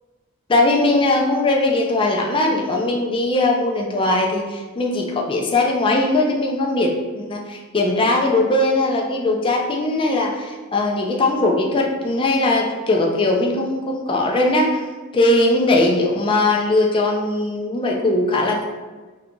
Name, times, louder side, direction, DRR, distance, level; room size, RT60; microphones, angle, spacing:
voice 1, 0.5-14.8 15.1-18.6, left 2 dB, 25° left, 0 dB, 0.4 m, -19 dB
2.8 x 2.3 x 3.7 m, 1.3 s
head